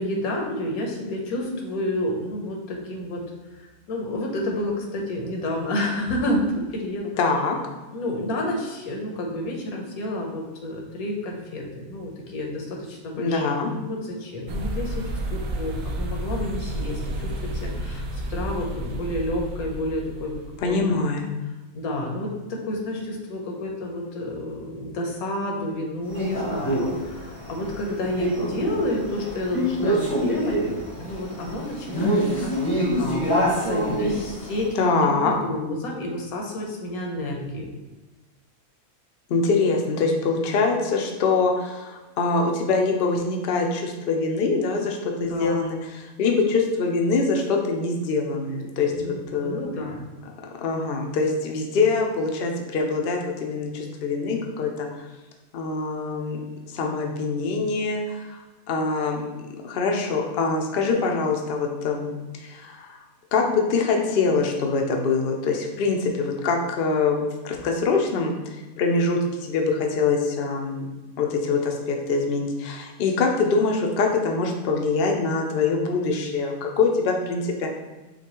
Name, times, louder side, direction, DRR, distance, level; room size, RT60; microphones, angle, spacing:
voice 1, 0.0-3.2 3.6-7.1 7.9-13.5 13.7-15.0 15.3-17.3 17.6-20.9 21.7-30.6 31.0-34.7 35.0-37.8 45.2-45.6 48.9-50.0, left 1 dB, 80° left, 0 dB, 1.3 m, -30 dB
voice 2, 7.2-7.6 13.2-13.7 20.6-21.3 34.8-35.3 39.3-49.7 50.6-55.1 55.5-56.4 56.7-58.4 58.7-59.2 59.6-63.0 63.3-68.3 68.8-70.8 71.2-77.7, left 4 dB, 60° left, 1 dB, 0.6 m, -24 dB
sound 1, 14.5-20.8, right 1 dB, 70° right, 0.9 m, -31 dB
Male speech man speaking, 26.1-34.7, equal, 20° left, 0.6 m, -26 dB
6.5 x 2.3 x 2.9 m, 1.2 s
omnidirectional pair, 1.5 m